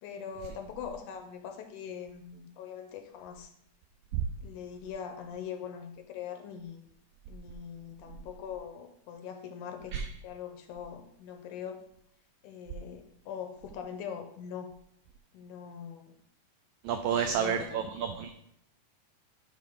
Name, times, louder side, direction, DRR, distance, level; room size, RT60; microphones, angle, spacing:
voice 1, 0.0-3.5 4.4-6.8 7.3-11.8 12.4-14.7 15.3-16.1 17.1-17.8, left 7 dB, 80° left, 5 dB, 2.0 m, -42 dB
voice 2, 16.8-18.3, right 8 dB, 90° right, 7 dB, 1.6 m, -30 dB
10.5 x 3.9 x 3.6 m, 0.73 s
omnidirectional pair, 3.9 m